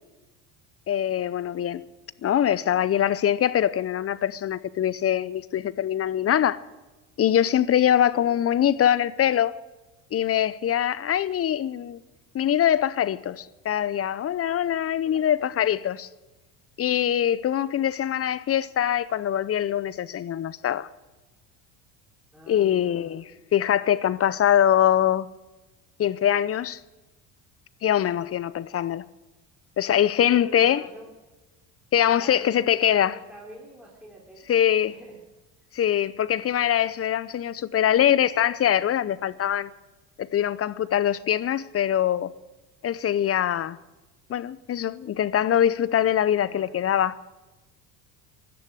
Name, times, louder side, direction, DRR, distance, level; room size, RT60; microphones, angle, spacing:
voice 1, 0.9-1.8 2.2-6.6 7.2-9.6 10.1-12.0 12.3-16.1 16.8-20.9 22.5-23.2 23.5-25.3 26.0-26.8 27.8-29.0 29.8-30.9 31.9-33.2 34.5-34.9 35.7-39.7 40.2-42.3 42.8-43.8 44.3-47.2, left 10 dB, 30° left, 0.6 m, -23 dB
voice 2, 15.0-15.7 22.3-23.3 30.3-31.1 32.0-34.4 34.8-35.2 35.6-35.7 46.4-46.8, equal, ahead, 3.3 m, -47 dB
16.5 x 11.5 x 6.3 m
hypercardioid pair, 75°, 50 cm